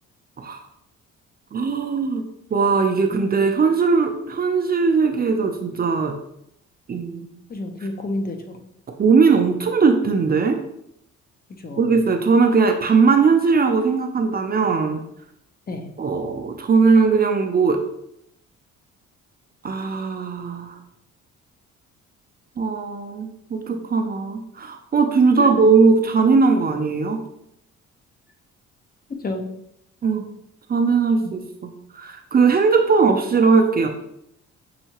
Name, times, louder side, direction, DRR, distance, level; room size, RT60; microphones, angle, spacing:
voice 1, 1.5-2.2 2.5-6.2 6.9-7.3 9.0-10.6 11.8-15.0 16.0-17.8 19.6-20.8 22.6-27.2 30.0-30.2 30.7-33.9, right 4 dB, 30° right, 4 dB, 0.5 m, -19 dB
voice 2, 7.5-8.6 11.6-11.9 15.7-15.9 23.7-23.8 25.4-25.5 29.2-29.5 31.2-31.3, left 2 dB, 30° left, 4 dB, 0.6 m, -30 dB
5.6 x 2.7 x 2.9 m, 0.77 s
cardioid pair, 90°, 30 cm